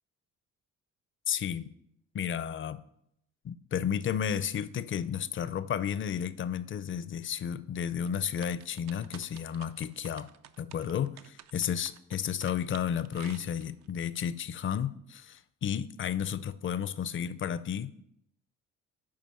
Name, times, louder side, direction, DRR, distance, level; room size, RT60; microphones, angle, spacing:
voice 1, 1.3-1.7 2.1-2.8 3.4-10.3 10.6-17.9, left 8 dB, 40° left, 0.5 m, -32 dB
sound 1, 8.1-13.9, right 10 dB, 65° right, 0.5 m, -52 dB
7.7 x 4.8 x 5.5 m
cardioid pair, 90°, 30 cm